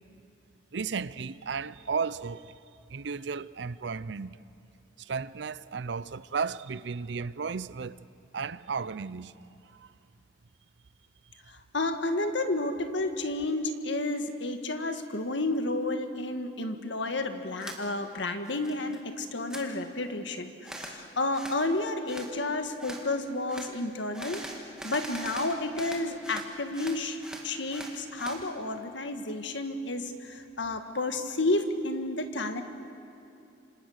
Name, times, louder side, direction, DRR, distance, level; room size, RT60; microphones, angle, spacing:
voice 1, 0.7-2.5 2.9-4.4 5.0-8.0 8.3-9.3 9.8-9.9, right 5 dB, 70° right, 0.5 m, -34 dB
voice 2, 11.5-24.4 24.8-32.6, left 2 dB, 75° left, 1.7 m, -31 dB
sound 1, 17.6-17.8 18.2-19.0 19.2-19.6 20.6-21.0 21.3-21.6 22.1-22.3 22.8-23.0 23.5-23.7 24.1-26.5 26.7-28.4, right 1 dB, 5° right, 2.0 m, -41 dB
27.0 x 26.5 x 6.6 m
head